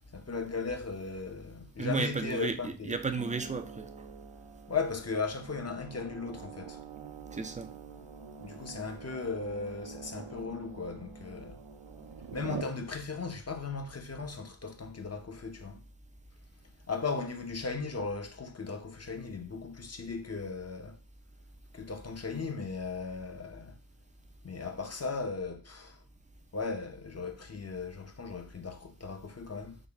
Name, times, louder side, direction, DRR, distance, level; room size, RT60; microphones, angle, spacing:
voice 1, 0.1-3.0 4.7-6.8 8.4-11.6 12.3-15.8 16.9-21.0 21.7-23.8 24.4-26.0 26.5-29.8, left 4 dB, 35° left, 0.6 m, -37 dB
voice 2, 1.8-3.9 7.3-7.7, right 4 dB, 20° right, 0.3 m, -33 dB
sound 1, 3.2-12.6, right 6 dB, 80° right, 0.6 m, -46 dB
3.9 x 2.0 x 3.3 m
wide cardioid pair, 50°, 44 cm